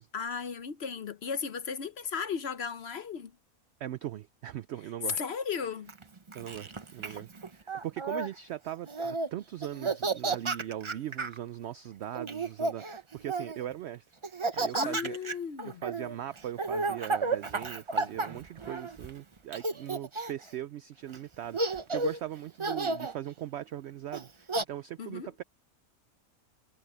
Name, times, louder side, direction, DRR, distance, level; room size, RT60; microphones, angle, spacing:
voice 1, 0.1-3.3 5.2-5.9 7.0-7.2 14.5-15.8 25.0-25.3, left 6 dB, 55° left, 0.9 m, -36 dB
voice 2, 3.8-5.2 6.3-15.2 15.6-25.4, right 12 dB, 65° right, 0.7 m, -40 dB
Laughter, 5.9-8.3 8.9-9.3 9.6-11.4 12.2-13.7 14.2-19.1 19.5-20.5 21.1-21.2 21.5-22.2 22.6-23.1 24.1-24.6, right 3 dB, 25° right, 0.7 m, -32 dB
omnidirectional pair, 1.5 m